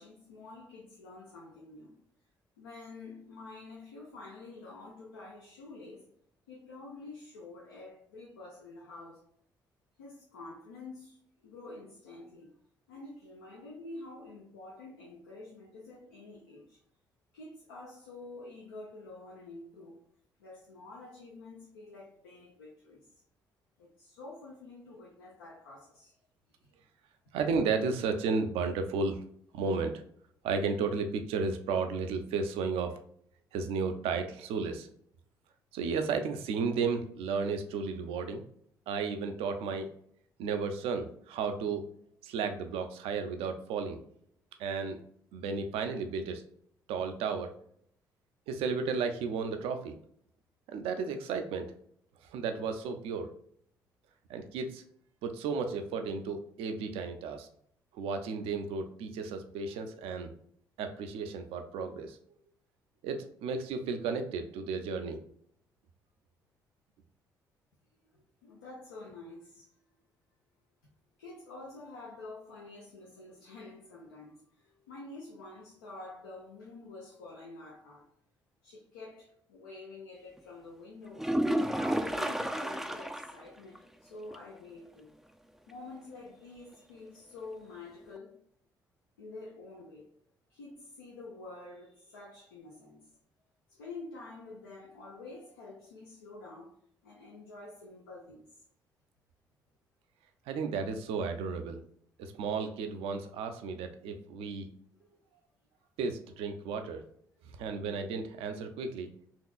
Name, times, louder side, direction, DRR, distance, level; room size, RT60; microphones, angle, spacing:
voice 1, 0.0-2.0 2.6-6.1 6.5-9.2 10.0-11.2 11.4-12.5 12.9-16.8 17.3-20.0 20.4-23.2 23.8-26.2 68.1-69.7 71.2-78.1 78.6-81.3 81.7-85.2 85.7-88.4 89.2-90.1 90.5-93.1 93.7-96.7 97.0-98.5, left 2 dB, 80° left, 0.6 m, -48 dB
voice 2, 27.3-29.2 29.5-29.9 30.4-32.9 33.5-34.9 35.7-38.4 38.9-39.9 40.4-41.9 42.2-44.0 44.6-45.0 45.3-46.4 46.9-47.5 48.5-50.0 50.7-51.7 52.3-53.3 54.3-54.8 55.2-57.5 57.9-60.3 60.8-62.2 63.0-65.2 100.5-101.8 102.2-104.7 106.0-107.0 107.6-109.1, right 5 dB, 65° right, 0.5 m, -33 dB
sound 1, 81.2-83.4 83.8-83.9 84.3-84.4 88.2-88.3, right 1 dB, 5° right, 0.4 m, -31 dB
4.4 x 2.9 x 2.4 m
figure-of-eight pair, 45°, 11 cm